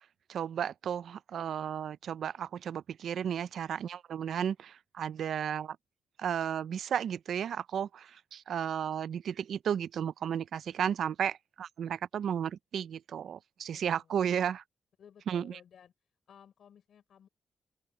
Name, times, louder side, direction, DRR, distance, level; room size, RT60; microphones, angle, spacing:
voice 1, 0.3-5.8 6.2-14.6 15.3-15.6, right 8 dB, 85° right, 0.4 m, -33 dB
voice 2, 13.7-14.2 15.0-15.9 16.3-17.3, left 8 dB, 80° left, 4.6 m, -57 dB
open air
wide cardioid pair, 140°, 0 cm